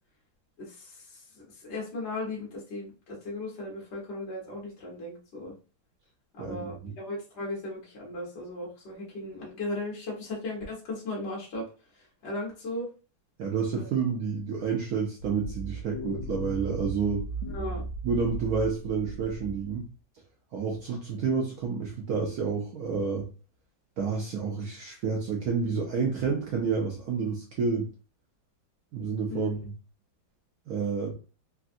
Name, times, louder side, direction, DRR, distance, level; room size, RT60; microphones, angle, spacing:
voice 1, 0.6-5.5 6.3-11.7 11.9-12.9 13.7-13.9 17.5-17.8 29.3-29.5, left 2 dB, 40° left, -3 dB, 1.2 m, -37 dB
voice 2, 6.4-6.7 13.4-17.2 18.0-19.9 20.5-23.3 24.0-27.9 28.9-29.7 30.7-31.1, right 5 dB, 70° right, 0 dB, 0.9 m, -29 dB
sound 1, 15.2-19.9, right 2 dB, 70° left, 1.0 m, -36 dB
3.5 x 2.4 x 2.5 m, 0.34 s
omnidirectional pair, 2.2 m